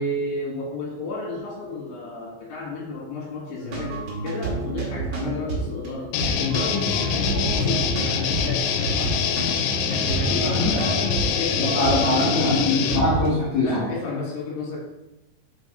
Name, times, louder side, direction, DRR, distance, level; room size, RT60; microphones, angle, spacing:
voice 1, 0.0-9.3 9.9-12.0 13.6-14.8, left 2 dB, 75° left, -4 dB, 3.8 m, -32 dB
sound 1, 3.6-13.3, right 4 dB, 75° right, 1.4 m, -30 dB
sound 2, 6.1-13.0, left 7 dB, 90° left, 3.0 m, -24 dB
voice 2, 10.3-10.7 11.6-13.8, left 2 dB, 55° left, -8 dB, 2.2 m, -23 dB
5.8 x 5.5 x 3.8 m, 0.91 s
omnidirectional pair, 5.3 m